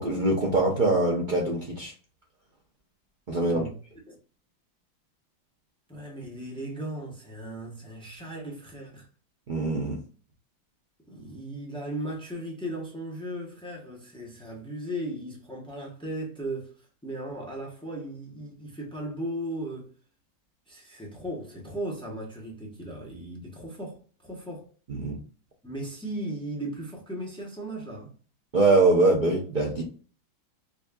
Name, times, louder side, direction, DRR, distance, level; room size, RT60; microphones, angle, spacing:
voice 1, 0.0-1.9 3.3-3.7 9.5-10.0 24.9-25.2 28.5-29.8, right 2 dB, 80° right, 0.4 m, -23 dB
voice 2, 5.9-9.1 11.1-16.7 17.0-19.9 20.7-24.7 25.6-28.1, right 1 dB, 5° left, 0.6 m, -37 dB
5.1 x 2.6 x 2.3 m
omnidirectional pair, 2.1 m